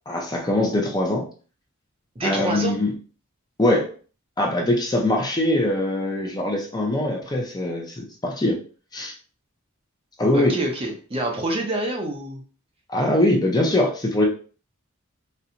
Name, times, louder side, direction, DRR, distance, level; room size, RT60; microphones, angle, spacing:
voice 1, 0.1-1.2 2.2-2.9 3.6-3.9 4.4-8.6 8.9-9.1 10.2-10.6 12.9-14.3, left 1 dB, 20° left, 0 dB, 0.6 m, -22 dB
voice 2, 2.2-2.8 10.3-12.4, right 1 dB, 25° right, 1 dB, 0.6 m, -26 dB
4.3 x 2.2 x 2.6 m, 0.39 s
head